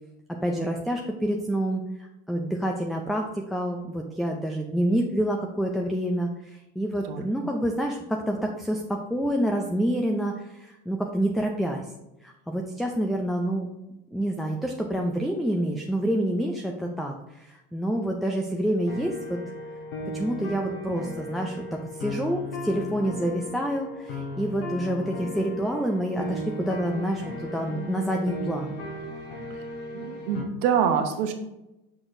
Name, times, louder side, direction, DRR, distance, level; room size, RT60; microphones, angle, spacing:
voice 1, 0.4-11.8 12.2-13.7 14.1-19.4 20.1-28.8, right 1 dB, ahead, 2 dB, 0.4 m, -28 dB
sound 1, 18.9-30.4, left 1 dB, 75° left, 1.5 m, -36 dB
voice 2, 29.9-31.3, right 7 dB, 70° right, 6 dB, 1.0 m, -25 dB
6.0 x 5.9 x 2.6 m, 0.95 s
supercardioid pair, 110°, 29 cm